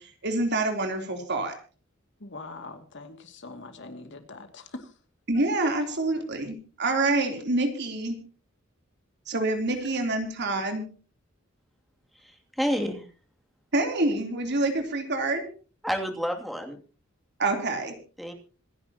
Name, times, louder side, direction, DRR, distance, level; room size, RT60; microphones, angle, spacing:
voice 1, 0.0-1.5 5.3-8.2 9.3-10.9 13.7-15.5 17.4-17.9, right 2 dB, 55° right, 4 dB, 3.5 m, -27 dB
voice 2, 2.2-4.9, left 2 dB, 65° left, 6 dB, 2.4 m, -42 dB
voice 3, 12.2-13.0 15.8-16.8 18.2-18.3, equal, ahead, 2 dB, 2.7 m, -29 dB
26.5 x 10.5 x 2.9 m, 0.37 s
head